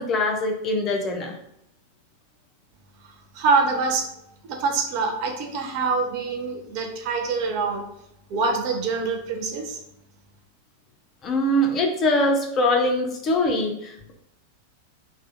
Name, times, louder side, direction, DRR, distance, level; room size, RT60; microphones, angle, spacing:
voice 1, 0.0-1.3 11.2-14.1, left 1 dB, 30° left, 2 dB, 0.5 m, -23 dB
voice 2, 3.0-4.1 4.5-7.9 8.3-9.8, right 4 dB, 45° right, 3 dB, 0.5 m, -25 dB
2.5 x 2.3 x 2.5 m, 0.77 s
figure-of-eight pair, 90°, 0 cm